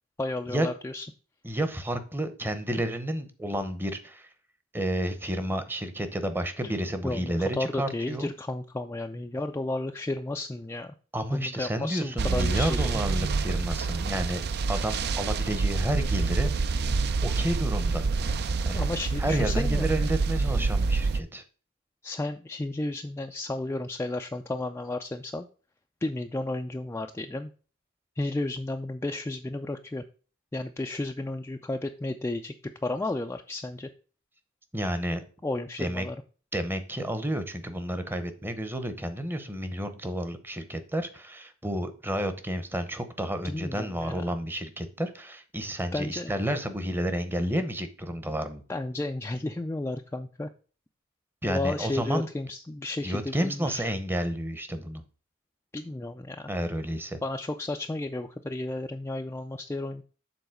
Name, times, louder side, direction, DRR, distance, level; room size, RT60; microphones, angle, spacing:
voice 1, 0.2-1.1 7.0-10.9 11.3-13.0 18.7-20.1 22.0-25.5 26.0-27.5 28.2-30.0 30.5-33.9 35.4-36.2 43.4-44.2 45.9-46.3 48.7-50.5 51.5-53.9 55.7-56.5 57.2-60.0, left 2 dB, 10° left, 5 dB, 0.3 m, -33 dB
voice 2, 1.4-4.3 4.7-8.3 11.1-16.6 17.2-18.0 18.6-18.8 19.2-21.4 34.7-35.2 35.8-36.1 36.5-48.6 51.4-52.3 53.0-55.0 56.5-57.2, equal, 10° right, 9 dB, 0.8 m, -31 dB
sound 1, 12.2-21.2, right 4 dB, 50° right, 0.5 m, -27 dB
7.0 x 3.9 x 6.4 m, 0.38 s
head